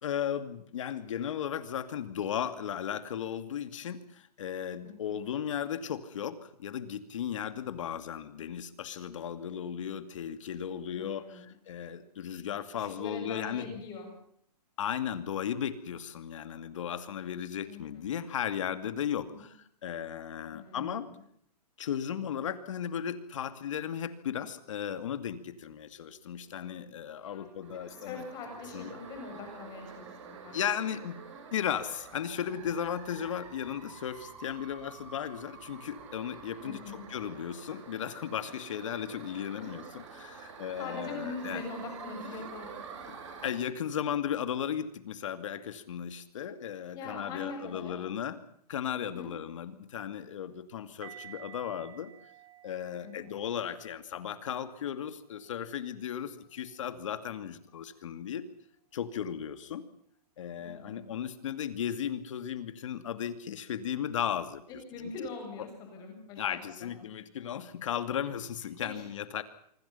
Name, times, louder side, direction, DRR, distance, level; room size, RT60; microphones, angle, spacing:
voice 1, 0.0-13.8 14.8-21.1 21.8-28.2 28.7-29.0 30.5-31.1 31.5-41.6 43.1-43.2 43.4-48.4 48.7-52.1 52.6-58.4 58.9-59.9 60.4-64.6 65.0-65.1 66.4-69.4, left 9 dB, 50° left, 11 dB, 2.5 m, -36 dB
voice 2, 4.8-5.2 11.0-11.5 12.7-14.1 17.7-18.1 19.3-19.4 20.5-21.1 26.4-26.7 27.2-27.5 27.9-30.9 36.6-37.1 39.6-39.7 40.8-42.7 46.9-48.0 48.9-49.3 53.0-53.4 60.6-61.1 64.7-66.9 68.8-69.0, left 3 dB, 15° left, 3 dB, 7.3 m, -43 dB
sound 1, 27.6-43.5, right 6 dB, 45° right, 7.0 m, -48 dB
sound 2, 51.0-55.9 56.6-56.8, right 10 dB, 20° right, 3.4 m, -53 dB
25.5 x 25.0 x 5.6 m, 0.67 s
hypercardioid pair, 175°, 21 cm